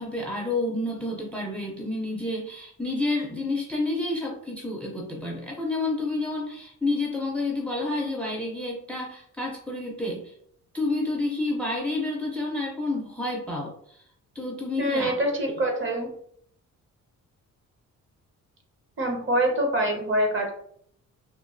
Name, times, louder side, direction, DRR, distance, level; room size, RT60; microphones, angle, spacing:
voice 1, 0.0-10.3 10.7-14.0 14.4-15.1, left 2 dB, 5° left, -1 dB, 0.4 m, -29 dB
voice 2, 14.8-16.1 19.0-20.5, right 1 dB, 40° right, 2 dB, 0.8 m, -25 dB
3.0 x 2.2 x 2.5 m, 0.65 s
cardioid pair, 125°, 32 cm